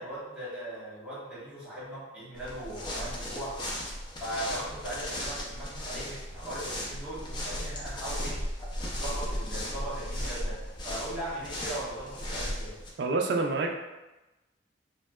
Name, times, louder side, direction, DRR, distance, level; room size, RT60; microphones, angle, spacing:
voice 1, 0.0-3.6 4.2-8.4 8.9-10.6 10.8-12.8, right 1 dB, 5° right, -12 dB, 1.2 m, -38 dB
sound 1, 2.4-12.9, equal, 25° left, 0.5 m, -36 dB
voice 2, 13.0-13.7, right 3 dB, 65° right, 2 dB, 0.3 m, -27 dB
3.1 x 2.7 x 2.2 m, 1.0 s
head